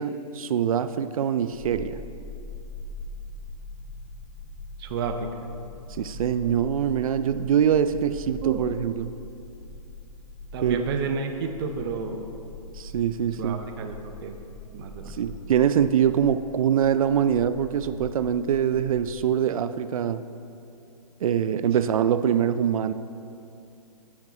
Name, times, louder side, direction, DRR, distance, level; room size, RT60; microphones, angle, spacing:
voice 1, 0.0-2.0 5.9-9.1 10.6-10.8 12.7-13.6 15.1-20.2 21.2-22.9, right 9 dB, 65° right, 12 dB, 0.4 m, -24 dB
sound 1, 1.5-19.2, left 2 dB, 50° left, 1.6 m, -42 dB
voice 2, 4.8-5.3 8.4-8.6 10.5-12.3 13.4-14.3 14.7-15.2, right 5 dB, 40° right, 5 dB, 0.7 m, -31 dB
13.5 x 7.3 x 2.9 m, 2.6 s
hypercardioid pair, 140°, 19 cm